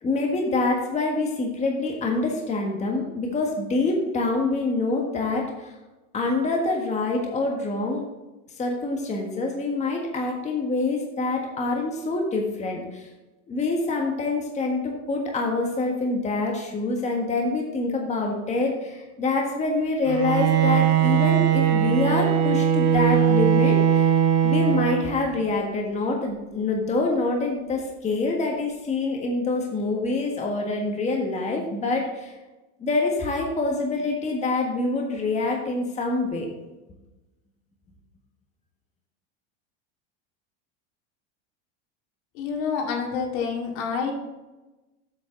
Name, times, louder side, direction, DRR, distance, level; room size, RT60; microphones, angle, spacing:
voice 1, 0.0-5.7 6.1-8.0 8.6-13.1 13.5-24.1 24.4-32.3 32.8-36.5, left 3 dB, 20° left, 0 dB, 1.5 m, -26 dB
Bowed string instrument, 20.1-25.4, right 9 dB, 45° right, 1.4 m, -20 dB
voice 2, 42.3-44.1, left 6 dB, 65° left, 1 dB, 2.2 m, -28 dB
8.0 x 7.1 x 3.8 m, 1.1 s
supercardioid pair, 130°, 36 cm